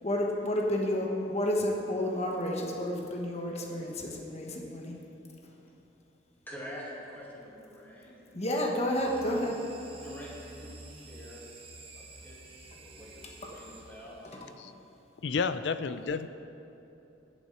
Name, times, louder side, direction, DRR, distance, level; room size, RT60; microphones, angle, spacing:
voice 1, 0.0-5.0 8.3-9.6, left 1 dB, 35° left, 0 dB, 1.2 m, -30 dB
voice 2, 6.5-8.5 10.0-11.5 11.9-14.4 15.3-15.6, equal, 10° left, -6 dB, 2.4 m, -47 dB
sound 1, 8.9-14.4, right 3 dB, 30° right, 1.0 m, -50 dB
voice 3, 15.2-16.3, left 5 dB, 70° left, 12 dB, 0.4 m, -30 dB
8.7 x 7.2 x 7.9 m, 2.9 s
head